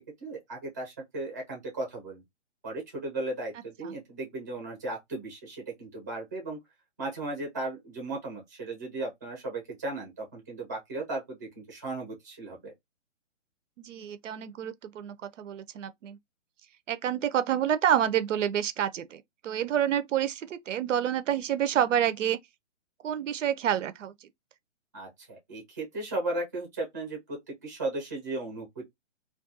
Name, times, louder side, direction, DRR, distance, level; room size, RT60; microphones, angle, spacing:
voice 1, 0.2-2.2 2.6-6.6 7.0-12.7 24.9-27.4 27.6-28.8, right 2 dB, 15° right, 0.5 m, -36 dB
voice 2, 13.8-16.2 16.9-22.4 23.0-24.1, right 10 dB, 75° right, 0.5 m, -28 dB
2.3 x 2.2 x 2.6 m
hypercardioid pair, 165°, 37 cm